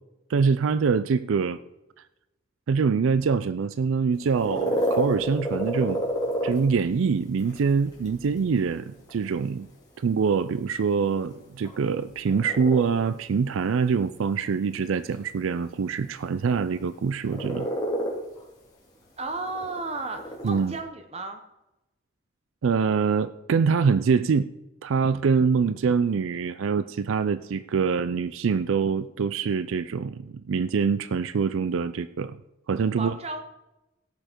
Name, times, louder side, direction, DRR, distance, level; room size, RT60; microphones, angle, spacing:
voice 1, 0.3-1.6 2.7-6.0 6.4-9.7 10.0-17.7 20.4-20.7 22.6-24.5 24.8-32.4 32.7-33.1, right 5 dB, 75° right, 14 dB, 0.4 m, -24 dB
sound 1, 4.1-20.8, equal, 20° left, 3.1 m, -33 dB
voice 2, 19.2-21.4 32.9-33.4, right 3 dB, 30° right, 6 dB, 0.8 m, -33 dB
17.0 x 6.7 x 4.5 m, 0.95 s
head